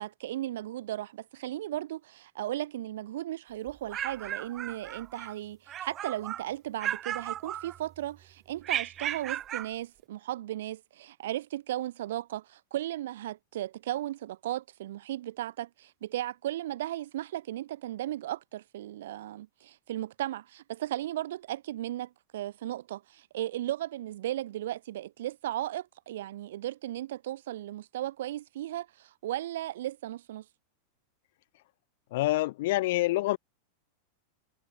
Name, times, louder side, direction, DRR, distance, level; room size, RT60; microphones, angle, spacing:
voice 1, 0.0-30.4, right 13 dB, 70° right, 5.1 m, -36 dB
sound 1, 3.7-5.3 5.7-6.5 6.8-8.1 8.6-9.7, right 11 dB, 20° right, 5.3 m, -35 dB
voice 2, 32.1-33.4, left 18 dB, 55° left, 6.3 m, -26 dB
supercardioid pair, 165°, 0 cm